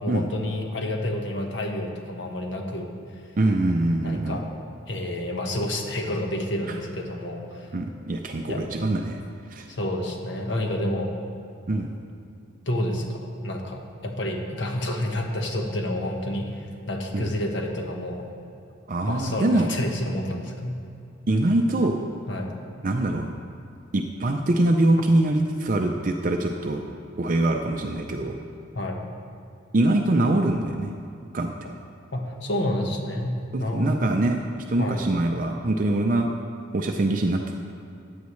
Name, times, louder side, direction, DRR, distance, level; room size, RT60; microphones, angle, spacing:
voice 1, 0.0-2.9 4.0-4.5 4.9-7.7 8.5-8.6 9.7-11.1 12.7-18.3 19.0-20.7 22.3-22.5 28.7-29.0 32.1-34.1 34.8-35.0, left 1 dB, 65° left, 2 dB, 1.3 m, -29 dB
voice 2, 3.4-4.4 6.7-6.8 7.7-9.2 9.5-9.7 11.7-11.9 17.1-17.3 18.9-19.7 21.3-22.0 22.8-23.3 23.9-28.4 29.7-30.9 31.3-31.5 33.5-36.3 36.7-37.5, right 1 dB, 45° right, 3 dB, 0.5 m, -23 dB
15.0 x 9.2 x 3.2 m, 2.6 s
head